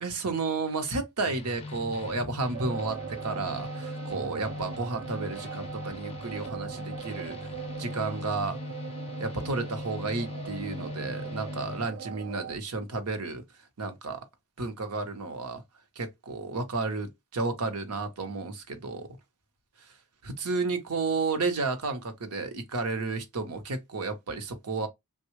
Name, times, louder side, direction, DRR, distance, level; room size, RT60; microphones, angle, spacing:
voice 1, 0.0-7.4 7.8-8.6 9.2-13.4 13.8-14.2 14.6-15.6 16.0-19.1 20.2-24.9, right 3 dB, 85° right, 0.8 m, -32 dB
sound 1, 1.3-11.9, left 3 dB, 25° left, 0.5 m, -40 dB
sound 2, 2.5-12.6, right 8 dB, 55° right, 0.4 m, -41 dB
3.5 x 2.3 x 3.0 m
head